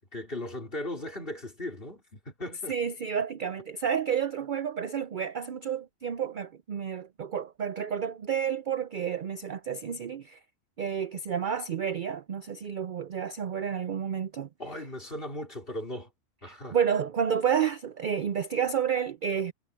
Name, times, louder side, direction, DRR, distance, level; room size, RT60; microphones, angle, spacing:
voice 1, 0.1-2.7 14.6-16.1 16.4-16.8, left 1 dB, 40° left, 4.5 m, -37 dB
voice 2, 2.7-10.4 10.8-14.5 16.5-19.5, right 8 dB, 60° right, 0.5 m, -30 dB
omnidirectional pair, 1.5 m